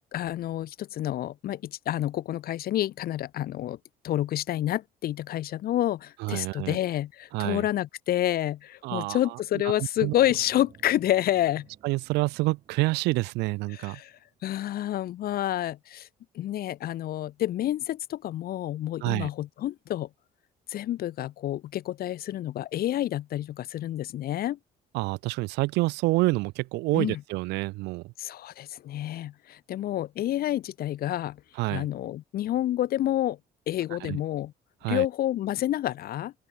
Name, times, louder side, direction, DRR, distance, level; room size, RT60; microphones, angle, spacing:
voice 1, 0.0-3.8 4.0-11.7 13.7-16.1 16.3-20.1 20.7-24.6 26.9-27.2 28.2-31.4 31.7-33.4 33.7-34.5 34.9-36.3, left 13 dB, 60° left, 1.4 m, -29 dB
voice 2, 6.2-6.8 7.3-7.6 8.8-9.4 9.8-10.1 11.8-14.0 19.0-19.3 24.9-28.1 31.6-31.9 34.1-34.2 34.8-35.1, right 22 dB, 90° right, 0.5 m, -28 dB
sound 1, 10.0-14.8, right 8 dB, 45° right, 3.5 m, -56 dB
open air
cardioid pair, 110°, 17 cm